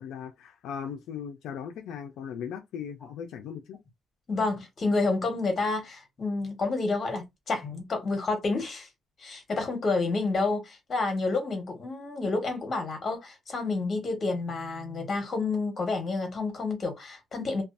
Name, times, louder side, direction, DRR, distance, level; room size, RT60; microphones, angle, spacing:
voice 1, 0.0-3.8, left 7 dB, 85° left, 0.4 m, -38 dB
voice 2, 4.3-8.9 9.2-17.6, left 3 dB, 40° left, 1.3 m, -29 dB
2.5 x 2.3 x 2.5 m
cardioid pair, 90°, 0 cm